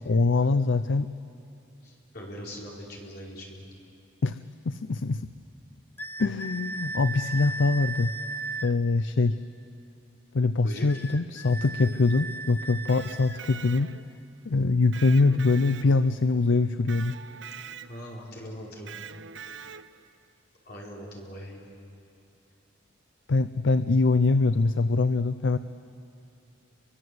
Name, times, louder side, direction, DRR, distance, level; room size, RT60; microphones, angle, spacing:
voice 1, 0.1-1.1 4.2-4.4 4.7-5.2 6.2-8.1 8.6-9.4 10.3-13.9 14.4-17.2 23.3-25.6, left 3 dB, 70° left, 12 dB, 0.5 m, -23 dB
voice 2, 1.8-3.6 10.6-10.9 11.8-11.9 17.9-19.0 20.6-21.6, equal, 50° left, -3 dB, 5.0 m, -41 dB
sound 1, 6.0-8.7 10.9-13.4, right 3 dB, 10° left, 0.6 m, -36 dB
Electric guitar, 12.7-14.2 14.9-16.3 16.9-18.2 18.9-20.1, right 7 dB, 65° right, 0.7 m, -43 dB
30.0 x 23.5 x 8.0 m, 2.7 s
head